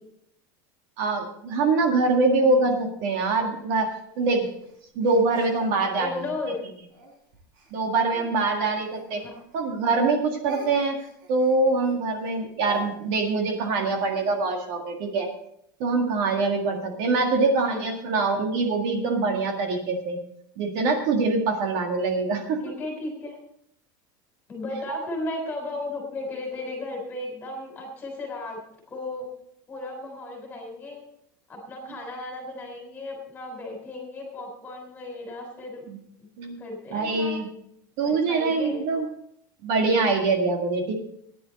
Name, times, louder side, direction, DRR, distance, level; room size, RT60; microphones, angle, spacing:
voice 1, 1.0-4.5 5.0-6.2 7.7-9.2 9.5-11.0 11.3-15.3 15.8-20.2 20.6-22.6 35.9-36.0 36.4-36.6 36.9-37.5 38.0-39.1 39.6-40.9, right 3 dB, 50° right, 3 dB, 1.8 m, -24 dB
Speech, 3.2-6.3 6.9-9.7 10.0-14.4, right 1 dB, 75° right, 6.2 m, -47 dB
voice 2, 5.9-6.6 9.1-9.3 17.3-17.4 17.7-17.9 22.6-23.4 24.5-28.6 28.9-29.3 29.7-31.0 31.5-35.8 36.2-36.3 36.6-37.4 38.0-39.1, left 2 dB, 15° left, 1 dB, 3.5 m, -35 dB
15.5 x 10.0 x 4.1 m, 0.73 s
supercardioid pair, 180°, 11 cm